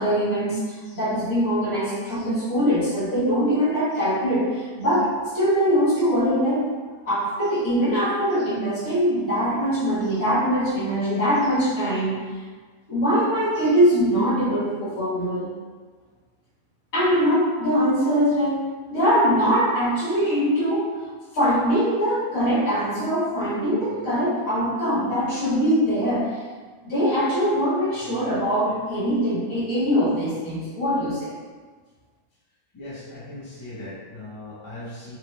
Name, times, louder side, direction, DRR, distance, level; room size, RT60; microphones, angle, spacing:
voice 1, 0.0-6.7 7.0-12.2 12.9-15.5 16.9-20.9 21.3-26.4 26.8-31.3, equal, 70° left, -9 dB, 1.6 m, -22 dB
voice 2, 32.7-35.2, left 1 dB, 25° left, -8 dB, 0.6 m, -38 dB
2.9 x 2.9 x 3.1 m, 1.5 s
omnidirectional pair, 1.5 m